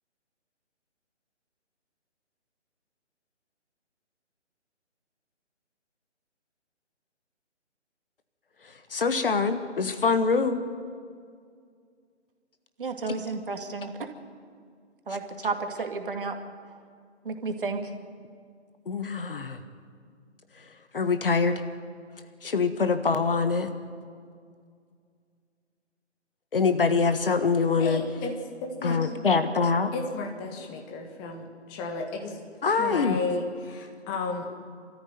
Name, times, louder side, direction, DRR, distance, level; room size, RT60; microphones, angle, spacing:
voice 1, 8.9-10.6 18.9-19.6 20.9-21.6 22.4-23.7 26.5-28.0 28.8-29.9 32.6-33.2, left 4 dB, 50° left, 9 dB, 1.5 m, -24 dB
voice 2, 12.8-14.1 15.1-16.4 17.2-17.9, right 4 dB, 50° right, 5 dB, 2.4 m, -32 dB
voice 3, 27.8-28.3 28.6-29.2 29.9-32.3 32.7-34.5, left 3 dB, 15° left, 4 dB, 1.7 m, -33 dB
27.0 x 14.0 x 9.3 m, 2.1 s
figure-of-eight pair, 145°, 35 cm